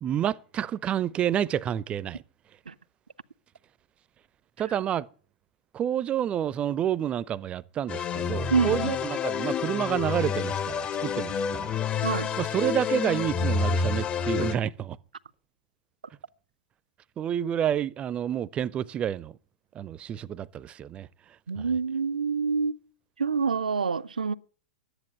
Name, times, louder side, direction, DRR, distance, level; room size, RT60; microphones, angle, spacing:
voice 1, 0.0-2.2 4.6-5.1 5.7-11.8 12.4-15.0 17.2-19.4 19.7-21.8, right 10 dB, 25° right, 0.6 m, -29 dB
sound 1, 7.9-14.6, left 6 dB, 25° left, 0.7 m, -29 dB
voice 2, 8.5-8.9 12.0-12.3 21.5-22.8 23.2-24.3, right 5 dB, 80° right, 0.6 m, -26 dB
12.0 x 10.0 x 8.9 m
figure-of-eight pair, 100°, 4 cm